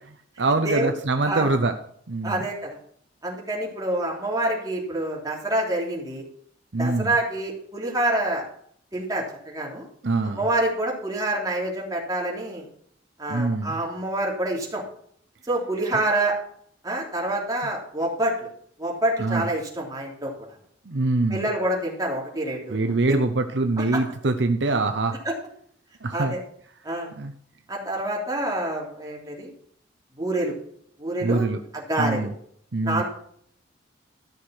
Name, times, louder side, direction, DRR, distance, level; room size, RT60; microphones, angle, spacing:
voice 1, 0.4-1.7 2.1-2.4 6.7-7.1 10.0-10.4 13.3-13.8 17.6-17.7 19.2-19.5 20.9-21.5 22.7-25.1 26.0-26.4 27.2-27.3 31.2-31.6 32.0-32.3 32.7-33.0, right 2 dB, 65° right, 7 dB, 0.8 m, -24 dB
voice 2, 2.2-2.8 3.2-6.2 6.8-8.4 8.9-9.9 10.3-12.6 13.2-14.8 15.5-16.4 16.8-18.3 18.8-20.3 21.3-23.2 23.8-24.0 25.2-25.3 26.1-26.4 26.8-27.1 27.7-29.5 30.2-30.5 31.0-31.5 31.7-32.3 32.8-33.0, right 1 dB, 20° right, -2 dB, 3.2 m, -27 dB
13.5 x 6.4 x 5.9 m, 0.64 s
head